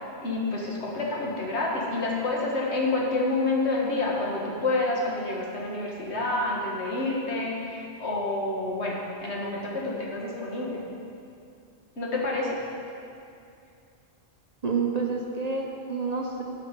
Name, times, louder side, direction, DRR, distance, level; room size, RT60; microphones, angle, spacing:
voice 1, 0.0-10.8 12.0-12.7, left 2 dB, 70° left, -3 dB, 1.8 m, -28 dB
voice 2, 14.6-16.4, right 4 dB, 40° right, 0 dB, 0.7 m, -28 dB
12.5 x 5.5 x 5.2 m, 2.5 s
omnidirectional pair, 1.2 m